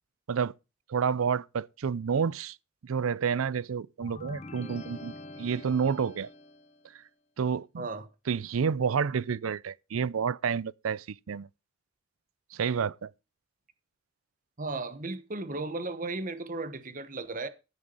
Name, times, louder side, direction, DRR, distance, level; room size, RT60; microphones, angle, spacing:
voice 1, 0.9-2.6 2.8-5.1 5.4-6.3 7.4-7.9 8.3-11.5 12.5-13.1, right 6 dB, 90° right, 0.5 m, -29 dB
sound 1, 4.0-6.8, left 2 dB, 35° left, 0.8 m, -45 dB
voice 2, 7.8-8.1 14.6-17.5, right 3 dB, 40° right, 1.1 m, -35 dB
14.0 x 6.1 x 5.3 m
head